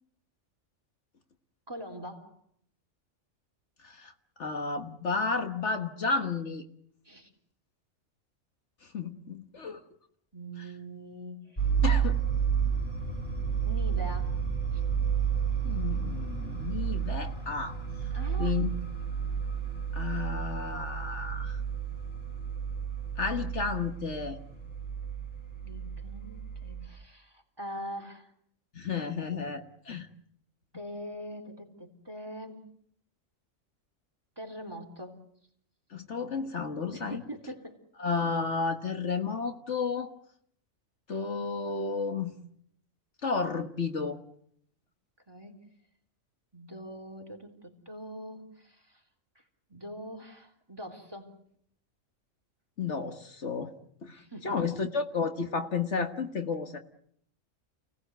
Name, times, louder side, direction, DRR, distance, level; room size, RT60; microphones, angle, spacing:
voice 1, 1.7-2.4 7.0-7.3 10.3-11.7 13.6-14.8 18.1-18.6 25.6-28.3 30.7-32.7 34.4-35.2 36.9-37.8 45.3-45.7 46.5-49.0 49.4-49.5 49.7-51.3 54.1-54.8, equal, 20° right, 5 dB, 3.5 m, -43 dB
voice 2, 4.4-6.6 8.9-9.8 11.8-12.2 15.6-17.7 18.4-18.8 19.9-21.6 23.2-24.4 28.7-30.1 35.9-37.2 38.0-40.1 41.1-42.4 43.2-44.2 52.8-53.7 54.0-56.8, left 4 dB, 60° left, 6 dB, 1.7 m, -32 dB
sound 1, 11.6-26.9, right 7 dB, 20° left, 5.5 m, -31 dB
29.5 x 18.0 x 8.0 m, 0.68 s
omnidirectional pair, 1.3 m